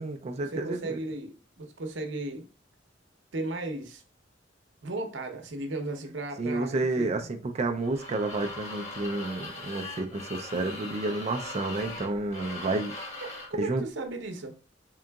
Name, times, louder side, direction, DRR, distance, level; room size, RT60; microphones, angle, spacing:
voice 1, 0.0-1.0 6.4-13.2 13.6-13.8, right 2 dB, 35° right, 0.4 m, -30 dB
voice 2, 0.5-2.5 3.3-4.0 4.8-7.1 13.5-14.5, right 2 dB, 70° right, 0.8 m, -35 dB
sound 1, 7.8-13.6, left 2 dB, 40° left, 1.2 m, -40 dB
3.8 x 3.6 x 2.2 m
head